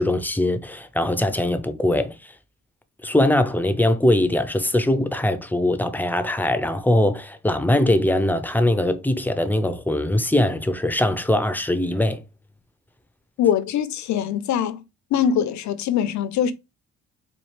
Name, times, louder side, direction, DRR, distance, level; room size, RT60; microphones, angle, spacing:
voice 1, 0.0-2.3 3.0-12.2, left 1 dB, 5° left, 0.5 m, -21 dB
voice 2, 13.4-14.8 15.1-16.5, left 9 dB, 70° left, 0.6 m, -22 dB
4.3 x 2.3 x 3.2 m
cardioid pair, 90°, 30 cm